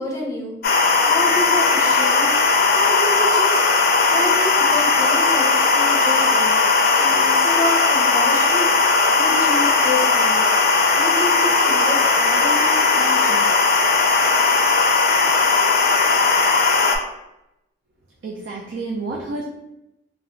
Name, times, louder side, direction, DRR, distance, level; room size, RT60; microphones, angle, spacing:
voice 1, 0.0-13.4, left 1 dB, 20° left, -4 dB, 0.7 m, -29 dB
sound 1, 0.6-17.0, left 4 dB, 55° left, 0.4 m, -17 dB
voice 2, 18.2-19.4, right 3 dB, 90° right, -1 dB, 0.4 m, -29 dB
2.4 x 2.3 x 3.0 m, 0.90 s
head